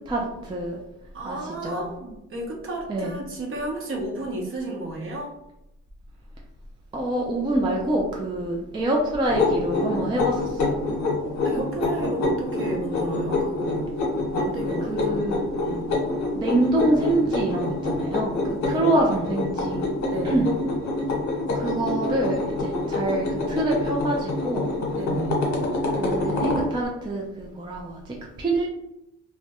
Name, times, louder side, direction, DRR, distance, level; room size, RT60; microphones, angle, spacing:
voice 1, 0.1-0.8 1.2-1.9 2.9-3.1 6.9-10.8 14.9-15.5 16.3-19.9 20.2-20.5 21.5-24.7 25.9-28.7, right 1 dB, 15° right, -1 dB, 0.3 m, -26 dB
voice 2, 1.1-5.3 11.2-13.8 14.3-15.3 15.6-15.8 18.6-18.9 20.1-20.5 24.9-25.5, right 2 dB, 45° right, 0 dB, 0.7 m, -32 dB
sound 1, 9.3-26.7, left 2 dB, 65° left, 0.8 m, -26 dB
2.2 x 2.0 x 2.8 m, 0.88 s
cardioid pair, 90°, 30 cm